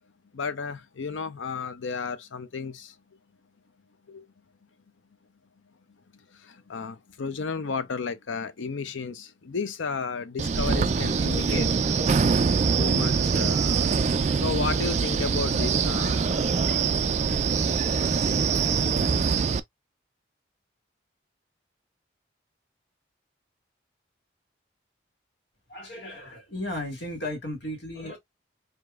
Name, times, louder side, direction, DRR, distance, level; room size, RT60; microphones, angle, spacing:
voice 1, 0.3-3.0 4.1-4.3 6.1-11.7 12.8-17.1, left 5 dB, 80° left, 0.6 m, -33 dB
Wind, 10.4-19.6, right 5 dB, 35° right, 0.3 m, -24 dB
voice 2, 25.7-28.2, left 1 dB, 65° left, 1.8 m, -35 dB
5.0 x 2.8 x 2.4 m
head